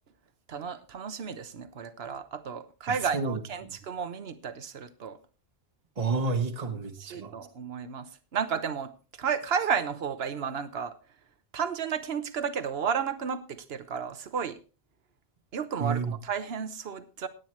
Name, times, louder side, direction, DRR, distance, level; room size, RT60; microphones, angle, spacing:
voice 1, 0.5-5.2 7.0-8.9 9.2-11.0 11.5-14.6 15.5-17.3, right 7 dB, 75° right, 11 dB, 1.3 m, -32 dB
voice 2, 2.9-3.7 6.0-7.3 15.8-16.2, right 4 dB, 40° right, 2 dB, 1.2 m, -30 dB
18.0 x 9.0 x 3.2 m, 0.34 s
omnidirectional pair, 1.1 m